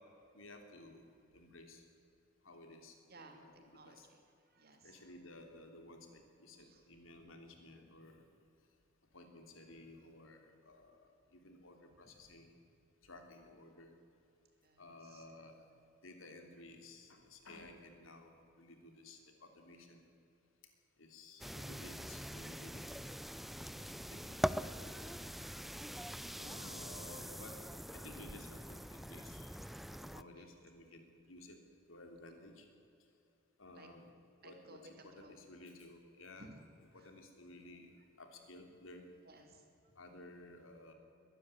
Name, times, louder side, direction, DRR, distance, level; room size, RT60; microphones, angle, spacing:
voice 1, 0.3-1.0 1.3-1.8 2.4-4.1 4.8-8.2 9.1-12.5 13.0-13.9 14.8-15.6 16.0-20.1 21.0-22.9 23.7-25.1 26.4-27.6 27.9-29.5 29.9-31.6 31.9-32.7 33.6-34.1 34.4-36.5 36.9-37.9 38.2-39.1 40.0-40.9, left 2 dB, 90° left, 4 dB, 3.2 m, -55 dB
voice 2, 3.1-3.4 3.7-4.2 4.5-5.0 6.5-6.8 14.6-15.2 30.4-30.5 33.7-33.9 34.4-34.9 35.2-35.3 36.4-36.6 37.0-37.1 39.2-39.9, right 2 dB, 50° right, 4 dB, 3.1 m, -58 dB
sound 1, 21.4-30.2, equal, ahead, 0.4 m, -43 dB
22.0 x 12.5 x 9.9 m, 2.7 s
head